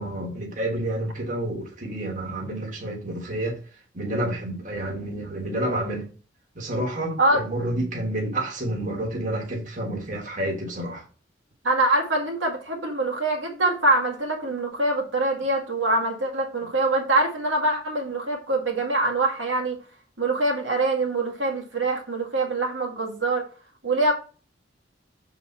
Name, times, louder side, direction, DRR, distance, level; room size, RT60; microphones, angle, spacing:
voice 1, 0.0-3.6 3.9-6.1 6.5-11.0, right 1 dB, 45° right, 1.4 m, -29 dB
voice 2, 11.6-19.8 20.2-23.5 23.8-24.1, right 2 dB, 85° right, 1.9 m, -24 dB
6.5 x 4.1 x 4.2 m
head